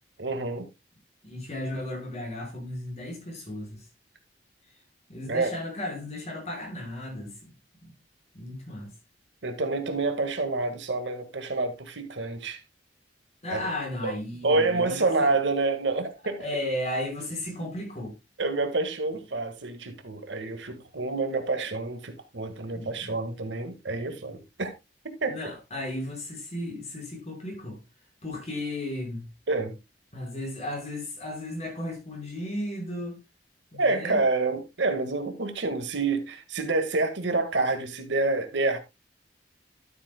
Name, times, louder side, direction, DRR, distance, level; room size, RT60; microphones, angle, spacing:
voice 1, 0.2-0.6 5.3-5.5 9.4-12.6 13.5-13.7 14.0-14.1 14.4-16.4 18.4-24.7 25.2-25.4 29.5-29.7 33.8-38.8, right 3 dB, 75° right, 1.7 m, -28 dB
voice 2, 1.2-3.8 5.1-7.4 7.8-8.0 8.3-8.9 13.4-15.3 16.4-18.1 22.7-23.2 25.3-27.8 28.2-29.3 30.1-33.2 33.7-34.2, left 1 dB, 35° left, 4.6 m, -35 dB
12.5 x 8.6 x 2.2 m
head